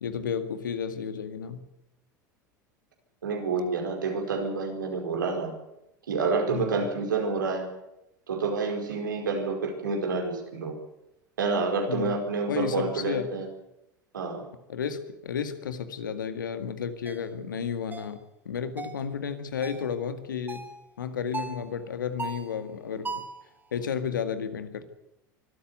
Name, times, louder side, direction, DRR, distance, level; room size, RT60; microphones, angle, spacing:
voice 1, 0.0-1.6 6.5-6.8 11.9-12.2 12.5-13.3 14.7-20.7 21.0-23.2 23.7-24.8, left 7 dB, 80° left, 10 dB, 2.0 m, -32 dB
voice 2, 3.2-5.5 6.1-7.7 8.3-10.7 11.4-13.5 14.1-14.4, right 4 dB, 80° right, 3 dB, 4.9 m, -28 dB
sound 1, 17.1-17.2 17.9-18.2 18.8-19.0 19.6-19.9 20.5-20.8 21.3-21.6 22.2-22.5 23.0-23.4, right 4 dB, 20° right, 4.1 m, -37 dB
24.5 x 13.5 x 9.5 m, 0.85 s
figure-of-eight pair, 75°, 10 cm